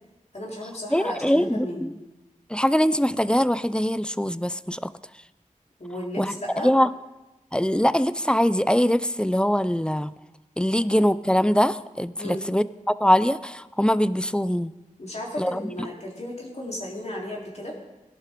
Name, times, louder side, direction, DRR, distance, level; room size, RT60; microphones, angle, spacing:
voice 1, 0.3-1.8 5.8-6.7 12.2-12.4 15.0-17.8, left 1 dB, 55° left, -3 dB, 3.6 m, -34 dB
voice 2, 0.9-1.9 2.5-4.9 6.2-6.3 6.6-6.9 7.5-10.1 10.6-14.7 15.4-15.9, equal, 5° left, 15 dB, 0.4 m, -22 dB
17.5 x 11.5 x 3.7 m, 1.0 s
wide cardioid pair, 55°, 14 cm